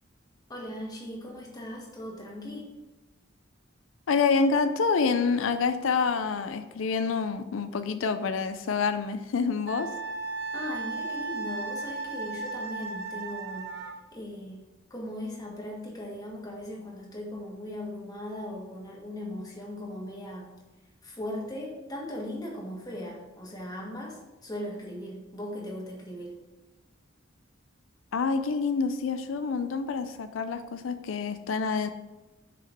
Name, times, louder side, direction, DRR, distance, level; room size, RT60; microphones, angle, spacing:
voice 1, 0.5-2.7 10.5-13.9 14.1-14.6 14.9-20.5 21.0-26.3, left 1 dB, 20° left, -2 dB, 1.7 m, -38 dB
voice 2, 4.1-9.9 28.1-31.9, left 5 dB, 90° left, 9 dB, 0.5 m, -27 dB
Wind instrument woodwind instrument, 9.7-14.0, right 3 dB, 55° right, 1.1 m, -35 dB
6.8 x 5.1 x 5.3 m, 1.1 s
head